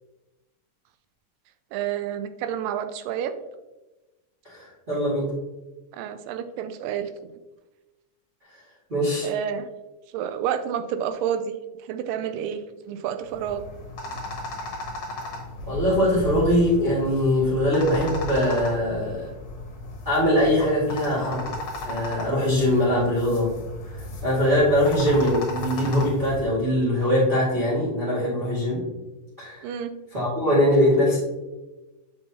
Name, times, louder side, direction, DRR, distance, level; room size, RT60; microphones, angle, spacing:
voice 1, 1.7-3.3 5.9-7.3 9.2-9.7 10.1-13.6 29.6-29.9, right 9 dB, 85° right, 9 dB, 2.2 m, -29 dB
voice 2, 4.4-5.3 8.9-9.3 15.6-19.3 20.0-21.6 21.8-23.5 23.9-28.8 29.4-29.7 30.1-31.2, left 1 dB, 20° right, -10 dB, 1.5 m, -22 dB
sound 1, 13.2-26.4, left 1 dB, 60° left, 2.0 m, -35 dB
6.9 x 5.5 x 2.8 m, 1.1 s
omnidirectional pair, 3.9 m